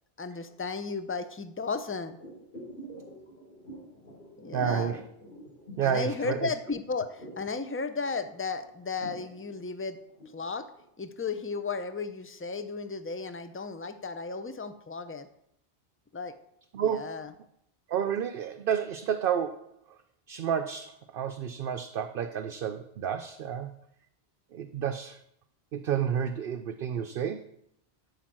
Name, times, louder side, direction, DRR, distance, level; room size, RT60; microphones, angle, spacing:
voice 1, 0.2-2.2 4.4-5.0 5.8-10.0 10.3-10.7 11.0-15.3 16.1-16.3 16.8-17.3, left 4 dB, 20° left, 10 dB, 0.4 m, -34 dB
drown in da bath, 2.2-6.6 6.9-10.4 10.8-10.9, right 1 dB, 50° left, 4.7 m, -46 dB
voice 2, 4.5-5.0 5.8-6.5 16.7-17.2 17.9-19.7 20.3-23.7 24.5-25.2 25.7-27.5, right 8 dB, 60° right, 7 dB, 0.7 m, -30 dB
11.5 x 5.1 x 7.5 m, 0.76 s
omnidirectional pair, 1.1 m